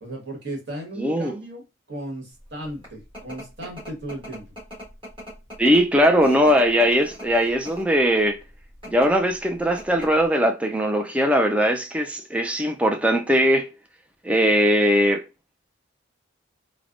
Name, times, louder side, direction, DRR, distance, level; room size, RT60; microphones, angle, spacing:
voice 1, 0.0-1.6 1.9-4.5, right 1 dB, 55° right, 1.4 m, -35 dB
voice 2, 1.0-1.3 5.6-8.4 8.9-13.7 14.2-15.2, equal, 5° right, 0.3 m, -20 dB
sound 1, 2.5-8.0 8.7-9.1 9.5-9.6 9.8-10.3, equal, 25° right, 1.5 m, -40 dB
3.2 x 2.0 x 2.4 m
head